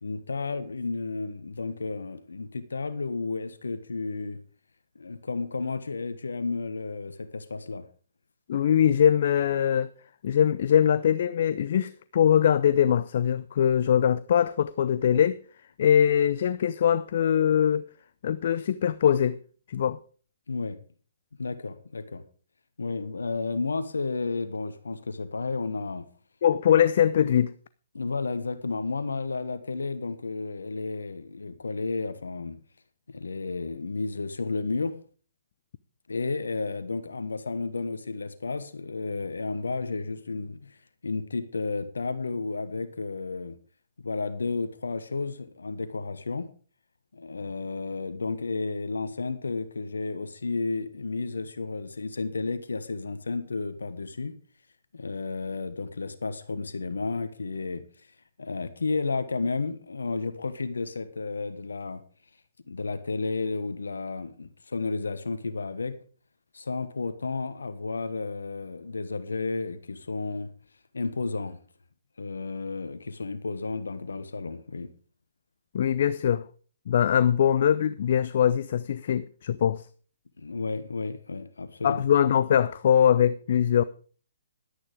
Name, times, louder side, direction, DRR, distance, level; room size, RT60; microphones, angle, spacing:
voice 1, 0.0-4.4 4.9-7.8 20.5-20.8 21.4-22.2 22.8-26.1 27.9-32.6 33.1-35.0 36.1-40.8 41.0-43.6 44.0-46.5 47.1-54.4 54.9-58.1 58.4-62.0 62.7-66.0 66.5-70.5 70.9-71.6 72.2-74.9 80.4-82.0, left 3 dB, 80° left, 1.2 m, -32 dB
voice 2, 8.5-9.9 10.2-15.4 15.8-17.8 18.2-19.4 19.7-20.0 26.4-27.5 75.7-76.5 76.9-79.9 81.8-83.8, left 9 dB, 55° left, 0.5 m, -22 dB
11.5 x 10.0 x 5.0 m
figure-of-eight pair, 130°, 0 cm